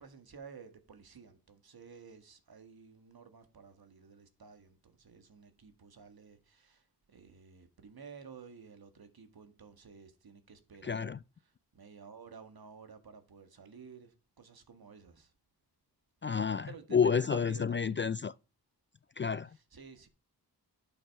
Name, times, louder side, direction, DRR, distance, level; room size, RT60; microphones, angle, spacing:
voice 1, 0.0-11.1 11.4-15.3 16.3-18.0 19.5-20.1, right 5 dB, 60° right, 1.8 m, -52 dB
voice 2, 10.8-11.2 16.2-18.3 19.2-19.5, left 6 dB, 30° left, 0.3 m, -30 dB
11.0 x 5.7 x 4.7 m
cardioid pair, 50°, 42 cm